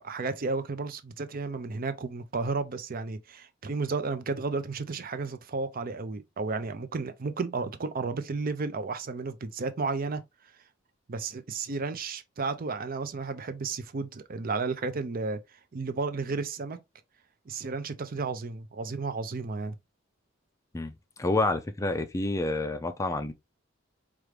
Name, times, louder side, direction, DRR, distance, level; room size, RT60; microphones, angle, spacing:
voice 1, 0.0-10.2 11.1-16.8 17.5-19.8, right 4 dB, 45° right, 0.5 m, -33 dB
voice 2, 21.2-23.3, left 2 dB, 15° left, 0.4 m, -28 dB
4.6 x 2.5 x 3.2 m
head